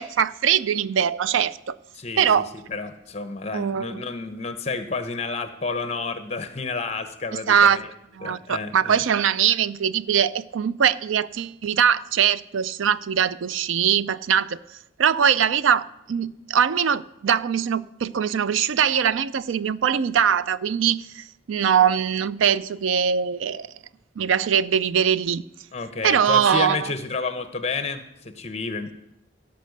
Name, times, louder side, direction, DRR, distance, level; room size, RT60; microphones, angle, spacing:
voice 1, 0.0-1.8 2.2-2.5 3.5-4.0 7.5-7.8 8.2-14.6 15.0-23.7 24.2-25.4 26.0-26.9, right 8 dB, 85° right, 0.4 m, -22 dB
voice 2, 1.9-7.9 8.2-9.0 25.7-28.9, left 4 dB, 35° left, 0.9 m, -30 dB
16.5 x 5.6 x 6.6 m
head